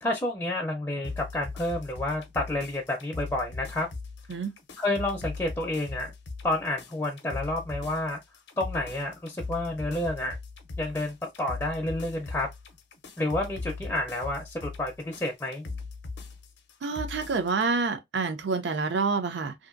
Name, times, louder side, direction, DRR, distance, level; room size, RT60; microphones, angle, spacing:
voice 1, 0.0-3.9 4.8-6.1 6.4-8.2 8.6-10.4 10.8-12.5 13.2-15.6, left 1 dB, 15° left, 0.4 m, -30 dB
sound 1, 1.0-17.7, left 3 dB, 75° left, 0.5 m, -40 dB
voice 2, 16.8-19.5, right 4 dB, 80° right, 0.5 m, -28 dB
2.7 x 2.4 x 2.4 m
head